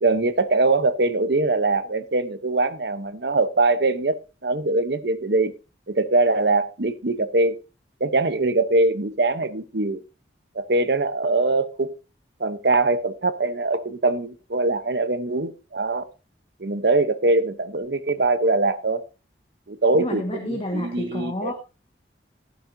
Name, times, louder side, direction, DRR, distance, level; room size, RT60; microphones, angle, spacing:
voice 1, 0.0-4.2 4.4-5.5 5.9-7.6 8.0-10.0 10.5-11.9 12.4-16.1 16.6-19.0 19.7-21.5, right 2 dB, 60° right, 0.9 m, -22 dB
voice 2, 20.0-21.5, left 1 dB, 30° left, 1.5 m, -29 dB
15.0 x 11.5 x 2.7 m
head